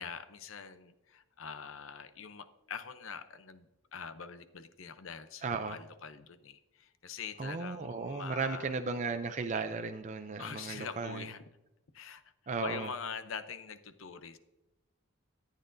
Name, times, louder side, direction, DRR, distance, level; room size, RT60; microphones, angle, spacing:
voice 1, 0.0-3.7 3.9-8.7 10.4-11.4 11.9-12.2 12.6-14.4, left 6 dB, 65° left, 11 dB, 0.7 m, -44 dB
voice 2, 5.4-5.8 7.4-11.3 12.5-12.9, right 4 dB, 35° right, 6 dB, 0.5 m, -35 dB
14.0 x 9.0 x 2.6 m, 0.99 s
head